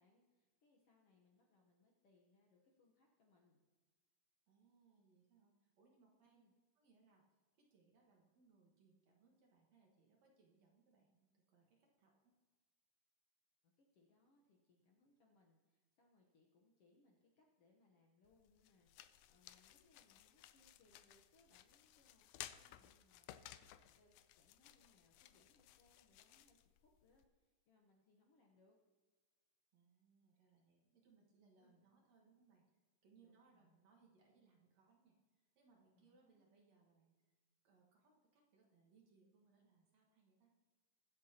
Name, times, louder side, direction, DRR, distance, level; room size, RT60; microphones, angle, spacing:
voice 1, 0.0-3.6 6.3-6.5 13.6-28.8 31.5-31.8 33.2-33.8 35.9-36.5, left 2 dB, 65° left, 0 dB, 1.6 m, -75 dB
voice 2, 4.5-6.5 6.8-7.2 7.6-12.4 29.7-32.6 33.0-37.2 37.6-40.5, right 4 dB, 60° right, 0 dB, 2.4 m, -73 dB
sound 1, 18.3-27.3, left 13 dB, 90° left, 1.6 m, -59 dB
22.0 x 8.0 x 2.9 m, 1.3 s
omnidirectional pair, 3.9 m